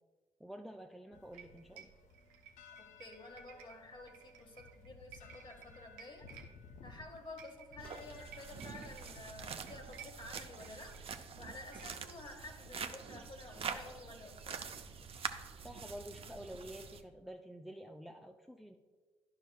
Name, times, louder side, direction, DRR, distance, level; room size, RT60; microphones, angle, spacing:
voice 1, 0.4-1.9 15.6-18.8, equal, ahead, 3 dB, 0.6 m, -49 dB
sound 1, 1.1-11.0, left 4 dB, 60° left, 0.6 m, -58 dB
sound 2, 1.3-12.2, right 8 dB, 80° right, 0.7 m, -58 dB
voice 2, 2.8-6.3 6.8-11.0 11.4-14.6, left 2 dB, 35° left, 4 dB, 1.5 m, -51 dB
sound 3, 7.8-17.0, right 6 dB, 45° right, 0.7 m, -45 dB
11.5 x 5.8 x 2.3 m, 1.4 s
hypercardioid pair, 45°, 14 cm